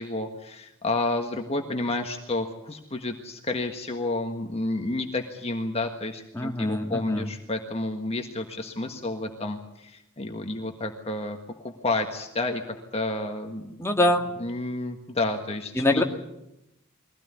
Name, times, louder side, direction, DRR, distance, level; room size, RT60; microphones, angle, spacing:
voice 1, 0.0-11.4 11.6-12.6 12.9-13.7 14.4-16.0, left 2 dB, 30° left, 4 dB, 1.6 m, -30 dB
voice 2, 6.3-7.3 13.8-14.3 15.8-16.0, left 1 dB, 15° left, 2 dB, 2.0 m, -24 dB
22.5 x 16.5 x 9.7 m, 0.86 s
head